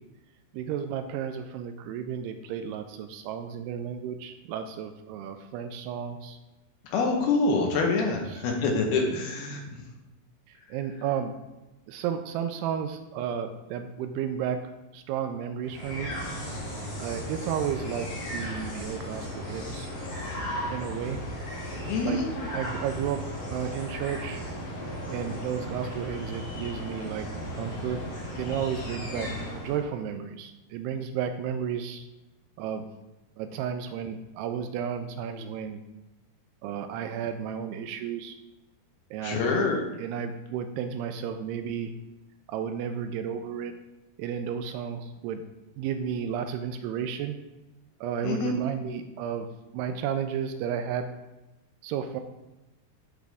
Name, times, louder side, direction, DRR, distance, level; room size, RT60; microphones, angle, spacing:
voice 1, 0.5-6.4 8.1-8.4 10.5-11.3 11.9-16.2 17.0-19.9 20.3-21.2 22.0-22.2 22.5-23.2 23.5-24.4 25.1-27.3 27.6-28.0 28.4-32.0 32.6-32.9 33.4-35.8 36.6-38.4 39.1-39.4 40.0-41.9 42.5-43.7 44.2-45.4 45.8-47.4 48.0-49.5 49.7-51.1 51.8-52.2, right 8 dB, 85° right, 7 dB, 2.4 m, -33 dB
voice 2, 6.9-9.6 21.9-22.3 39.2-39.8 48.2-48.5, left 3 dB, 75° left, 1 dB, 2.7 m, -26 dB
sound 1, 15.6-29.9, equal, 35° left, 2.0 m, -36 dB
10.5 x 4.9 x 3.5 m, 1.0 s
omnidirectional pair, 4.8 m